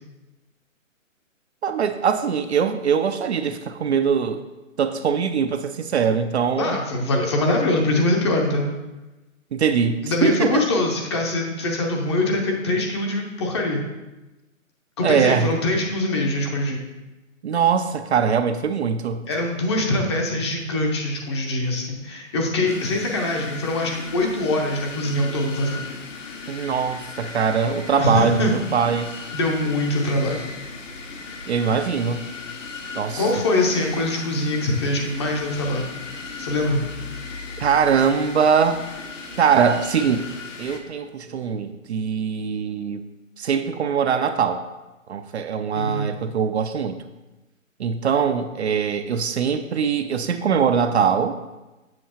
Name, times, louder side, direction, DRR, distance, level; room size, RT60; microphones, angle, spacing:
voice 1, 1.6-4.4 4.8-6.8 9.5-10.6 15.0-15.6 17.4-19.3 26.5-29.1 31.5-32.2 32.9-33.3 37.6-38.8 39.4-40.3 40.6-43.0 43.4-44.6 45.1-47.0 47.8-51.3, right 6 dB, 55° right, 8 dB, 0.5 m, -22 dB
voice 2, 6.6-8.7 10.0-13.8 15.0-16.8 19.3-25.8 28.0-28.6 29.3-30.4 33.2-35.9 36.4-36.8 45.7-46.1, left 2 dB, 20° left, 1 dB, 0.6 m, -23 dB
sound 1, 22.7-40.8, left 4 dB, 65° left, 1.2 m, -37 dB
7.6 x 5.4 x 2.9 m, 1.1 s
hypercardioid pair, 145°, 41 cm